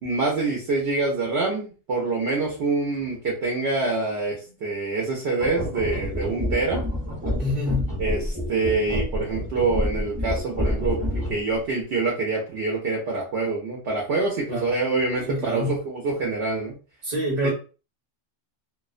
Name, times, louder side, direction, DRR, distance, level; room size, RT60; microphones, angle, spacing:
voice 1, 0.0-6.8 8.0-16.8 17.4-17.5, right 3 dB, 65° right, 0.9 m, -26 dB
sound 1, 5.4-11.6, left 1 dB, 10° right, 0.8 m, -28 dB
voice 2, 7.4-7.9 14.5-14.7 15.3-15.8 17.0-17.5, left 1 dB, 40° right, 0.8 m, -26 dB
2.4 x 2.2 x 2.4 m
omnidirectional pair, 1.3 m